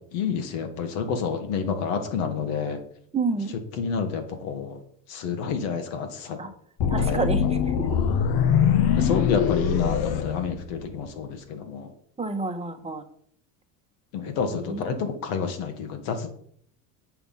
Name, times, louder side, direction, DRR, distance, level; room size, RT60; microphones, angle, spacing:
voice 1, 0.1-2.8 3.8-4.7 5.1-6.4 7.0-7.2 7.9-8.3 9.0-11.9 14.1-16.3, left 6 dB, 70° left, 5 dB, 2.1 m, -29 dB
voice 2, 3.1-3.5 6.4-6.5 6.9-7.4 7.8-7.9 12.2-13.0 14.5-15.0, right 4 dB, 15° right, 5 dB, 1.3 m, -29 dB
sound 1, 6.8-11.1, left 8 dB, 55° left, 1.0 m, -23 dB
8.0 x 5.8 x 5.6 m, 0.63 s
supercardioid pair, 95°, 47 cm